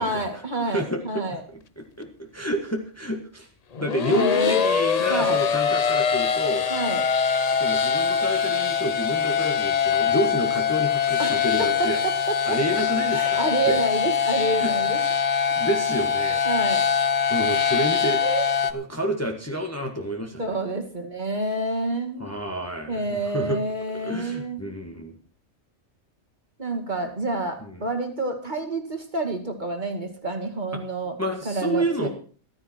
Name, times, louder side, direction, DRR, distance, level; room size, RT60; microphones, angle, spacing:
voice 1, 0.0-1.4 4.1-4.7 5.0-5.4 6.7-7.1 11.2-12.8 13.1-15.0 16.4-16.8 18.2-18.5 20.4-22.2 22.9-24.6 26.6-31.2 31.4-32.1, right 2 dB, 35° right, 4 dB, 2.2 m, -28 dB
voice 2, 0.6-1.2 1.5-3.5 3.8-6.7 7.5-12.0 12.5-13.8 14.6-14.7 15.5-16.4 17.3-18.2 18.7-20.6 22.2-23.6 23.9-25.1 27.6-27.8 31.2-32.1, right 1 dB, 10° left, 2 dB, 1.7 m, -29 dB
sound 1, 3.7-18.7, left 7 dB, 40° left, 0.6 m, -23 dB
14.5 x 13.0 x 4.5 m, 0.41 s
omnidirectional pair, 1.4 m